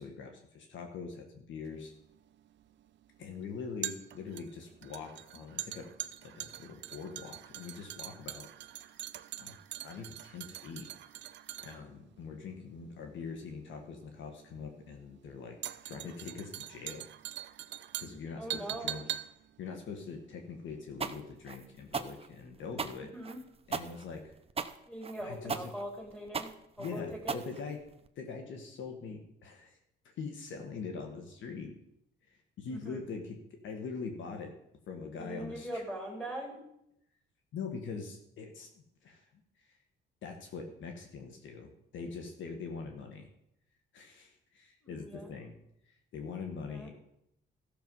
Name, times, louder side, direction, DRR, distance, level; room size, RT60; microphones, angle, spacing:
voice 1, 0.0-1.9 3.2-5.9 6.2-8.9 9.4-9.6 9.8-11.2 11.6-15.6 15.8-17.1 18.0-19.1 19.6-23.1 23.7-24.4 25.2-25.7 26.8-27.8 28.2-29.8 30.2-31.7 32.6-34.5 34.9-35.8 37.5-39.3 39.7-39.8 40.2-43.3 43.9-45.5 45.9-47.0, left 5 dB, 75° left, 4 dB, 1.7 m, -43 dB
sound 1, 1.7-20.9 21.2-21.3, right 12 dB, 65° right, 0.6 m, -43 dB
voice 2, 18.4-19.0 23.1-23.4 24.9-26.5 26.8-27.4 32.7-33.0 35.2-36.6 44.8-45.3 46.7-46.9, right 1 dB, 5° left, 0 dB, 4.1 m, -41 dB
sound 2, 21.0-28.1, right 5 dB, 30° right, 0.8 m, -37 dB
14.0 x 6.9 x 5.6 m, 0.78 s
cardioid pair, 90°, 20 cm